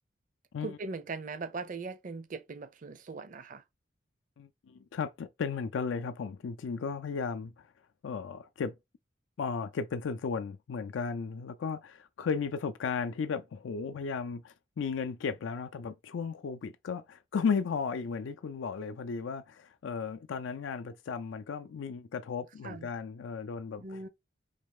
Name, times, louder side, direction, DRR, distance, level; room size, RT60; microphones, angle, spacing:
voice 1, 0.6-3.6 22.6-22.9 23.8-24.1, right 3 dB, 45° right, 0.6 m, -40 dB
voice 2, 4.4-7.7 8.0-8.7 9.4-24.1, left 5 dB, 80° left, 0.4 m, -35 dB
4.1 x 3.1 x 3.5 m
head